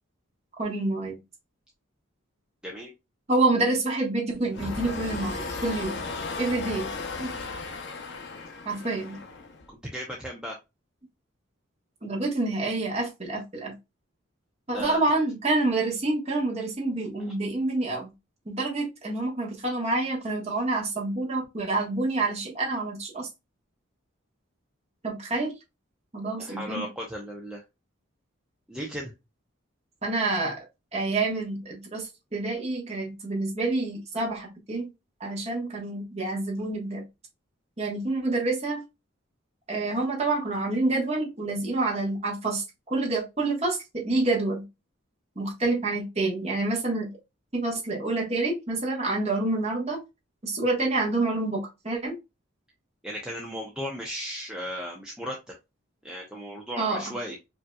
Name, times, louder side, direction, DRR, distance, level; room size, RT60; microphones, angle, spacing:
voice 1, 0.6-1.2 3.3-6.0 6.4-6.9 7.2-7.3 8.6-9.2 12.0-13.7 14.7-18.1 18.4-23.3 25.0-25.5 26.1-26.9 30.0-30.6 30.9-34.9 35.2-37.0 37.8-38.8 39.7-44.6 45.3-47.1 47.5-50.0 50.4-52.2 56.8-57.1, right 2 dB, 30° right, -1 dB, 1.5 m, -28 dB
sound 1, 4.5-9.7, left 3 dB, 55° left, 0.8 m, -35 dB
voice 2, 9.7-10.6 14.7-15.0 17.2-17.3 26.4-27.6 28.7-29.1 53.0-55.4 56.0-57.4, equal, 5° right, -1 dB, 0.7 m, -36 dB
5.2 x 2.7 x 2.3 m, 0.23 s
head